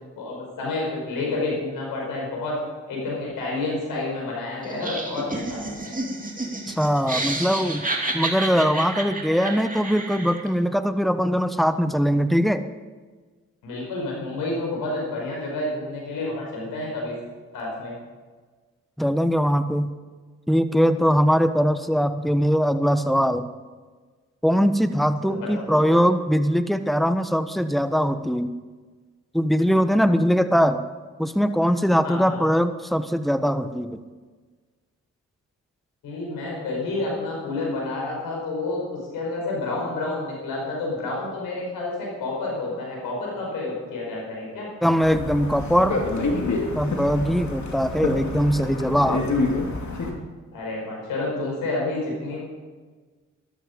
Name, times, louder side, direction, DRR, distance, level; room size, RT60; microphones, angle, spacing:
voice 1, 0.1-2.6 2.9-5.9 13.6-17.1 17.5-17.9 25.2-25.6 32.0-32.4 36.0-44.7 50.5-52.4, left 2 dB, 85° left, -2 dB, 5.1 m, -29 dB
Laughter, 4.6-10.5, right 2 dB, 25° right, 2.8 m, -30 dB
voice 2, 6.7-12.7 19.0-19.9 20.5-23.5 24.4-28.5 29.3-30.8 31.2-34.0 44.8-46.1 46.7-49.2, equal, ahead, 10 dB, 1.2 m, -21 dB
sound 1, 45.0-50.1, left 3 dB, 60° left, 2.8 m, -27 dB
13.0 x 12.5 x 5.3 m, 1.4 s
supercardioid pair, 40°, 33 cm